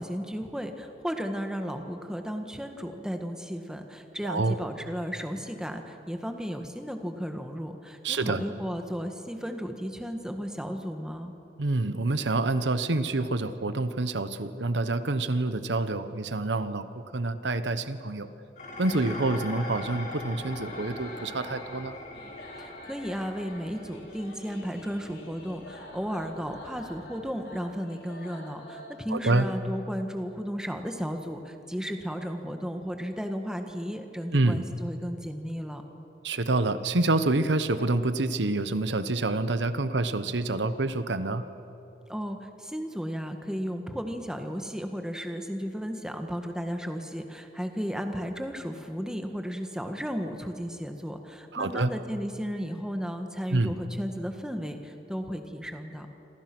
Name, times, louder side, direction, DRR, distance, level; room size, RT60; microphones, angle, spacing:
voice 1, 0.0-11.3 22.5-35.8 42.1-56.1, equal, 5° right, 5 dB, 1.6 m, -34 dB
voice 2, 4.2-4.6 8.0-8.4 11.6-18.3 18.8-21.9 29.1-29.4 34.3-34.6 36.2-41.5 51.5-51.9 53.5-53.7, right 2 dB, 85° right, 11 dB, 1.1 m, -27 dB
Dishes pots and pans, 18.6-27.4, left 1 dB, 45° left, 5.8 m, -42 dB
sound 1, 20.5-29.0, left 1 dB, 70° left, 5.3 m, -47 dB
27.5 x 26.5 x 6.2 m, 2.9 s
head